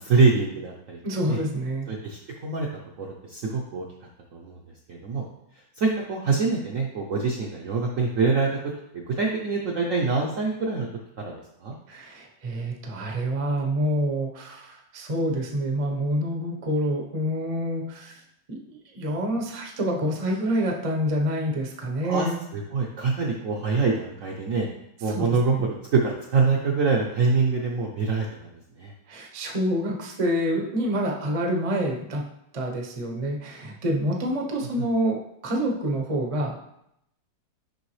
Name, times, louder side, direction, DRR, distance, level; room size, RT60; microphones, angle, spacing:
voice 1, 0.0-1.0 1.3-1.4 1.9-2.7 3.0-3.8 4.3-4.6 4.9-5.2 5.8-8.5 8.9-10.9 11.2-11.3 11.6-11.7 22.0-24.7 25.0-28.5 28.8-28.9 34.8-34.9, right 4 dB, 65° right, -1 dB, 0.8 m, -25 dB
voice 2, 1.0-1.9 11.9-18.2 18.5-22.4 25.1-25.7 29.1-32.2 32.5-36.5, equal, 40° right, 0 dB, 0.5 m, -27 dB
6.8 x 5.4 x 3.2 m, 0.77 s
omnidirectional pair, 2.2 m